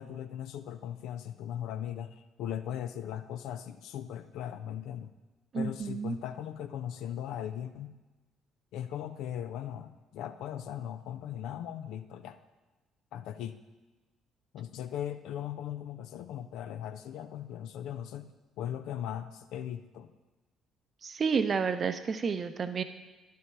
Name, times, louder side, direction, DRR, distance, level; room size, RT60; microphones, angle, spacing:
voice 1, 0.0-5.1 5.5-7.9 8.7-12.4 13.1-13.6 14.5-20.1, left 10 dB, 65° left, 10 dB, 0.5 m, -38 dB
voice 2, 5.5-6.2 21.0-22.8, right 5 dB, 45° right, 10 dB, 0.7 m, -30 dB
10.5 x 7.0 x 4.6 m, 1.2 s
hypercardioid pair, 50°, 0 cm